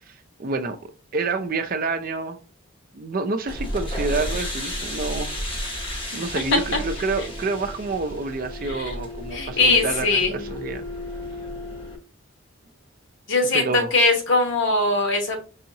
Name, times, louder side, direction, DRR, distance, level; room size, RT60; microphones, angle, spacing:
voice 1, 0.1-2.4 2.9-5.3 5.6-5.8 6.1-10.8 13.5-13.9, right 3 dB, 45° right, 0.5 m, -28 dB
sound 1, 3.5-12.0, equal, 25° left, 0.8 m, -32 dB
voice 2, 9.3-10.4 13.3-15.4, left 3 dB, 65° left, 1.2 m, -21 dB
5.5 x 2.8 x 2.7 m
head